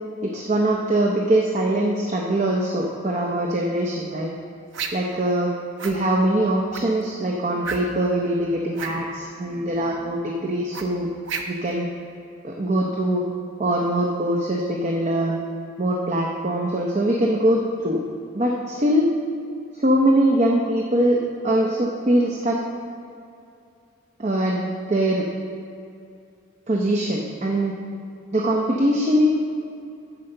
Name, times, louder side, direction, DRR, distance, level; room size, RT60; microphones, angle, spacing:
voice 1, 0.2-4.3 4.9-5.5 5.8-11.1 11.5-11.9 12.4-13.2 13.6-15.4 15.8-18.0 18.3-19.1 19.7-21.2 21.4-22.6 24.2-25.3 26.7-27.7 28.3-29.3, right 1 dB, 35° right, -1 dB, 0.7 m, -22 dB
sound 1, 4.7-5.1 5.8-6.0 6.7-7.0 7.6-8.1 8.7-9.0 10.7-11.7, right 5 dB, 70° right, 0.7 m, -31 dB
9.7 x 4.9 x 6.6 m, 2.6 s
head